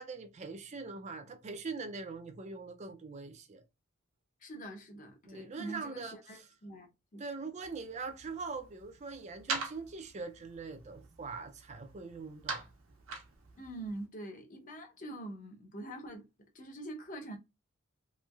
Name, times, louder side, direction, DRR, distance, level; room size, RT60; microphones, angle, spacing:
voice 1, 0.0-3.6 5.3-6.4 7.2-12.7, right 4 dB, 35° right, 0.4 m, -42 dB
voice 2, 4.4-7.2 13.6-16.2 16.5-17.4, right 1 dB, 40° left, 0.7 m, -44 dB
sound 1, 7.6-14.1, right 4 dB, 80° right, 1.0 m, -44 dB
3.1 x 3.0 x 2.3 m
head